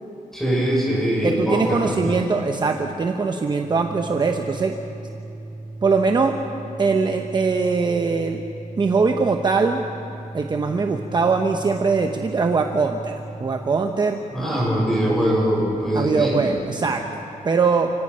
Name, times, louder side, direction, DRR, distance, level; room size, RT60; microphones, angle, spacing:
voice 1, 0.3-2.3 14.3-16.5, equal, ahead, -4 dB, 6.7 m, -22 dB
voice 2, 1.2-4.7 5.8-6.3 6.8-8.4 8.8-9.8 10.3-14.2 15.9-17.9, right 4 dB, 30° right, 4 dB, 0.9 m, -21 dB
Organ, 3.5-13.9, right 2 dB, 75° right, 2.4 m, -37 dB
29.5 x 17.5 x 5.6 m, 2.9 s
wide cardioid pair, 160°, 15 cm